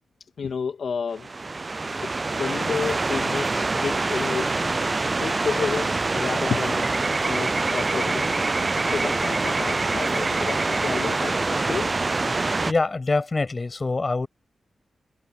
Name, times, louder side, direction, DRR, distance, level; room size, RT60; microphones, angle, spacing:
voice 1, 0.4-1.3 2.0-4.8 5.1-6.9 7.3-8.5 8.8-11.9, left 6 dB, 70° left, 2.0 m, -31 dB
sound 1, 1.2-12.7, right 3 dB, 35° right, 0.4 m, -25 dB
voice 2, 12.7-14.3, left 3 dB, 35° left, 7.6 m, -24 dB
cardioid pair, 75°, 0 cm